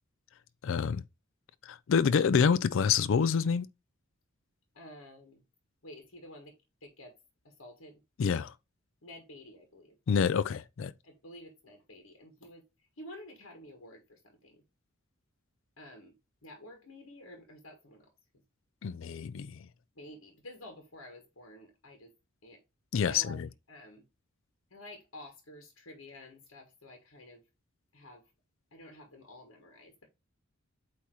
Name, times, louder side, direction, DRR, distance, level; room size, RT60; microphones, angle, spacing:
voice 1, 0.6-1.0 1.6-3.7 8.2-8.5 10.1-10.9 18.8-19.6 22.9-23.5, left 6 dB, 65° left, 0.4 m, -27 dB
voice 2, 4.7-5.4 5.8-6.5 6.8-7.1 7.6-8.0 9.0-9.9 11.0-12.6 13.0-14.5 15.8-16.1 16.4-18.1 20.0-22.1 22.4-22.6 23.1-23.4 23.7-24.0 24.7-27.4 27.9-28.2 28.7-30.1, left 1 dB, 90° left, 1.6 m, -50 dB
8.4 x 2.9 x 4.5 m
head